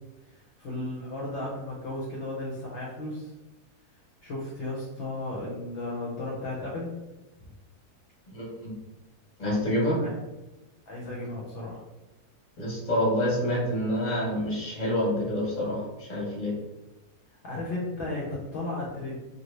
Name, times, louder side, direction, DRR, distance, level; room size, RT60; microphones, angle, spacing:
voice 1, 0.3-3.3 4.2-6.9 10.0-10.1 10.9-11.8 17.4-19.2, left 2 dB, 60° left, -4 dB, 0.8 m, -34 dB
voice 2, 8.3-8.7 9.4-10.0 12.6-16.5, equal, 30° left, -4 dB, 0.9 m, -27 dB
2.9 x 2.6 x 3.1 m, 1.1 s
omnidirectional pair, 1.7 m